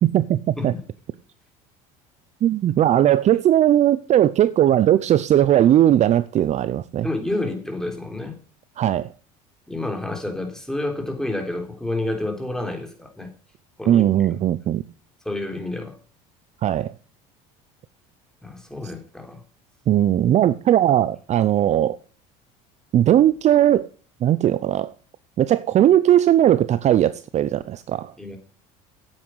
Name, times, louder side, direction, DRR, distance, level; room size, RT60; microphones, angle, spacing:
voice 1, 0.0-0.7 2.4-7.1 8.8-9.1 13.9-14.8 16.6-16.9 19.9-22.0 22.9-23.9 24.2-24.9 25.4-28.1, right 11 dB, 40° right, 0.6 m, -18 dB
voice 2, 7.0-8.4 9.7-13.3 13.8-14.0 15.2-16.0 18.4-19.4 28.2-28.4, left 2 dB, 5° left, 3.4 m, -29 dB
8.8 x 8.7 x 7.8 m
supercardioid pair, 95°, 17 cm